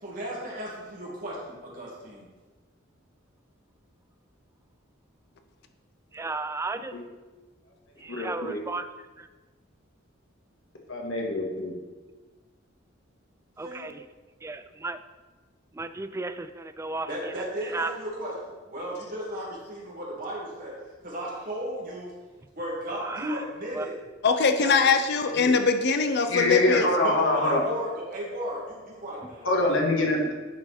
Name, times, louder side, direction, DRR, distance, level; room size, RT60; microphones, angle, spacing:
voice 1, 0.0-2.3 13.6-13.9 17.1-22.1 22.6-24.0 24.6-24.9 27.0-30.1, right 1 dB, 45° right, -4 dB, 2.3 m, -35 dB
voice 2, 6.1-6.9 8.0-8.9 9.2-9.3 13.6-14.0 14.4-15.0 15.7-17.4 17.7-17.9 22.9-23.4 23.7-23.9, right 3 dB, 15° right, 10 dB, 0.3 m, -34 dB
voice 3, 8.1-8.6 10.9-11.7 25.4-25.5 26.3-27.6 29.4-30.3, left 1 dB, 75° left, -1 dB, 1.7 m, -25 dB
voice 4, 24.2-26.9, left 5 dB, 55° left, 7 dB, 0.5 m, -22 dB
10.5 x 4.6 x 4.3 m, 1.3 s
head